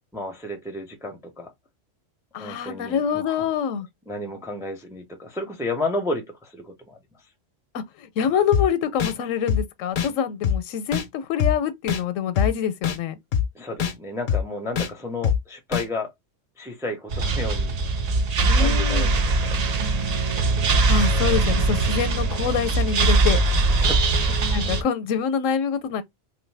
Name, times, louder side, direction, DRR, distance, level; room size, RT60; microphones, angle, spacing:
voice 1, 0.1-1.5 2.4-3.5 4.1-7.0 13.5-16.1 16.6-17.8 18.6-20.0 23.7-24.4, left 2 dB, 5° right, 0.4 m, -32 dB
voice 2, 2.3-3.9 7.7-13.2 18.5-19.1 20.9-23.4 24.5-26.0, left 7 dB, 90° left, 0.9 m, -26 dB
sound 1, 8.5-8.6 9.0-9.1 9.5-9.6 9.9-10.1 10.4-10.6 10.9-11.0 11.4-11.5 11.9-12.0 12.4-12.5 12.8-13.0 13.3-13.4 13.8-13.9 14.3-14.4 14.8-14.9 15.2-15.4 15.7-15.8, left 8 dB, 60° left, 0.5 m, -22 dB
sound 2, 17.1-24.8, right 3 dB, 70° right, 0.3 m, -21 dB
2.8 x 2.1 x 3.2 m
omnidirectional pair, 1.3 m